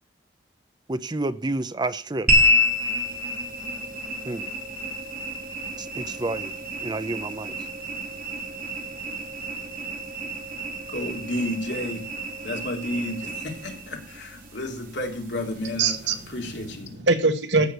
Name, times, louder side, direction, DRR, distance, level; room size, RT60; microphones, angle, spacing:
voice 1, 0.9-2.4 4.3-4.5 5.8-6.5 6.8-7.5, right 2 dB, 25° right, 0.6 m, -30 dB
sound 1, 2.3-16.9, left 1 dB, 55° right, 3.0 m, -29 dB
voice 2, 10.9-12.1 12.4-15.9 16.3-17.0, left 1 dB, 75° left, 2.9 m, -31 dB
voice 3, 15.8-17.7, right 3 dB, 90° right, 1.8 m, -24 dB
14.0 x 6.5 x 6.8 m
head